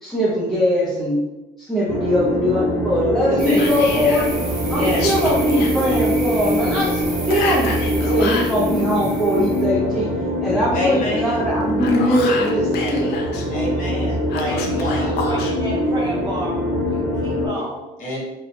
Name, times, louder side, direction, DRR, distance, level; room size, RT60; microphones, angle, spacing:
voice 1, 0.0-1.2 1.6-4.3 4.7-10.1 10.4-13.1, equal, ahead, -8 dB, 0.6 m, -21 dB
sound 1, 1.9-17.5, equal, 80° right, 1.0 m, -23 dB
voice 2, 3.3-3.6 4.7-5.1 10.7-11.4 13.5-16.0 18.0-18.2, left 1 dB, 50° left, -4 dB, 1.0 m, -27 dB
sound 2, 3.4-9.6, right 2 dB, 55° right, 0.9 m, -33 dB
Whispering, 3.6-4.3 4.9-5.7 7.3-8.5 11.6-13.4 14.3-15.5, left 4 dB, 75° left, 0.4 m, -29 dB
voice 3, 14.4-17.8, equal, 25° right, -6 dB, 1.0 m, -31 dB
2.7 x 2.1 x 2.6 m, 1.0 s
cardioid pair, 110°, 17 cm